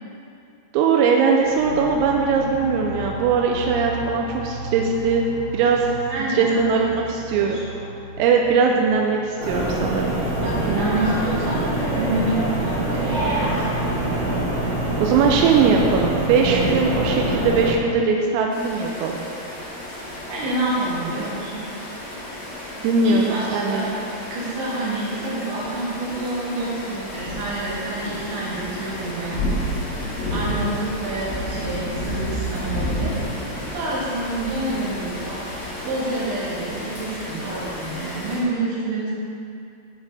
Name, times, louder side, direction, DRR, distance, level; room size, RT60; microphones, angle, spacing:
voice 1, 0.7-5.3 5.5-5.9 6.4-7.6 8.2-10.2 15.0-19.2 22.8-23.9, right 5 dB, 90° right, 1 dB, 3.3 m, -20 dB
sound 1, 1.4-12.7, right 1 dB, 40° left, 2.8 m, -36 dB
voice 2, 6.1-6.6 7.3-7.8 10.4-13.6 20.3-21.7 23.0-23.9 24.3-29.5 29.9-39.1, right 2 dB, 65° right, -7 dB, 4.2 m, -28 dB
sound 2, 9.4-17.7, right 1 dB, 45° right, 1.5 m, -24 dB
sound 3, 18.5-38.4, equal, 70° left, 1.2 m, -31 dB
8.9 x 7.1 x 4.9 m, 2.5 s
omnidirectional pair, 5.9 m